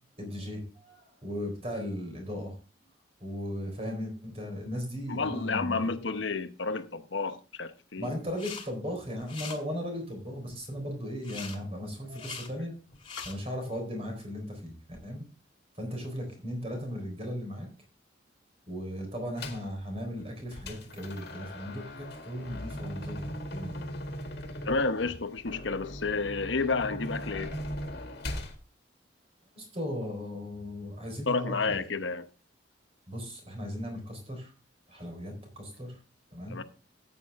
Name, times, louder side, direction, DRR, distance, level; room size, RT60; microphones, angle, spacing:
voice 1, 0.2-2.6 3.2-5.8 8.0-12.7 13.2-14.7 15.0-15.3 15.7-17.7 18.7-23.9 29.5-31.8 33.1-34.5 34.9-36.0 36.3-36.6, equal, 35° right, 4.2 m, -37 dB
voice 2, 5.1-8.1 13.2-13.3 24.6-27.5 31.3-32.3 36.5-36.6, left 4 dB, 85° left, 0.9 m, -31 dB
sound 1, 8.3-8.7 9.0-9.6 11.2-11.6 12.1-12.5 12.9-13.3, left 5 dB, 30° left, 2.1 m, -41 dB
sound 2, 19.4-19.7 20.2-28.6, equal, 60° left, 1.9 m, -39 dB
13.5 x 8.4 x 3.5 m
head